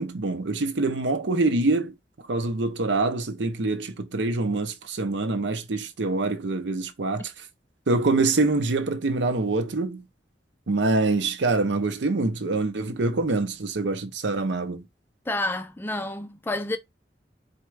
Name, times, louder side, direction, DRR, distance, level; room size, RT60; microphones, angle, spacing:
voice 1, 0.0-1.9 2.3-7.5 7.9-10.1 10.7-14.9, right 3 dB, 90° right, 0.7 m, -25 dB
voice 2, 15.3-16.8, left 2 dB, 10° left, 0.4 m, -29 dB
4.4 x 2.2 x 4.6 m
head